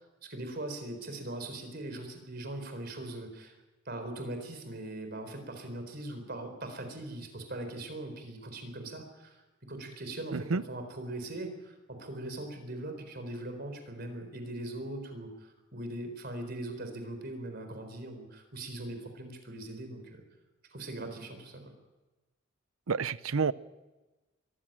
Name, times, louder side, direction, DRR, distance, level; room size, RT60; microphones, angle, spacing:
voice 1, 0.0-3.5 3.9-9.4 9.7-20.2 20.7-21.6, right 1 dB, 50° right, 6 dB, 4.2 m, -40 dB
voice 2, 10.3-10.6 22.9-23.5, right 5 dB, 90° right, 18 dB, 0.6 m, -29 dB
23.0 x 15.0 x 8.9 m, 1.1 s
head